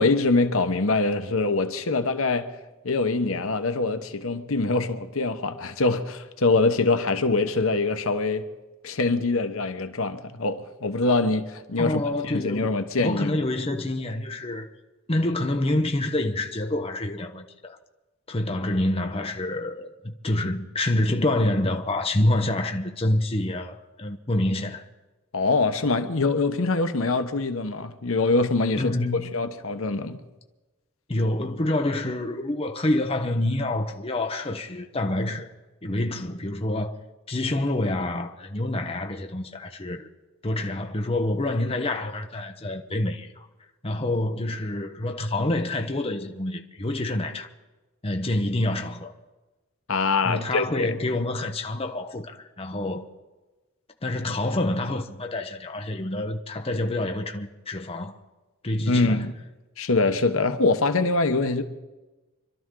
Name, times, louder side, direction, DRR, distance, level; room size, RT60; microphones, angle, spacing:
voice 1, 0.0-2.5 2.8-8.5 8.8-13.4 25.3-28.9 29.3-30.2 49.9-50.9 58.9-59.3 59.8-61.6, left 3 dB, 75° left, 1.0 m, -24 dB
voice 2, 11.8-12.7 13.0-14.7 15.1-17.8 18.3-24.8 28.8-29.4 31.1-35.5 35.8-37.0 37.3-40.1 40.4-43.5 43.8-47.5 48.0-49.1 50.2-53.1 54.0-58.2 58.6-59.3, left 1 dB, 25° left, 0.9 m, -27 dB
25.5 x 12.5 x 3.8 m
head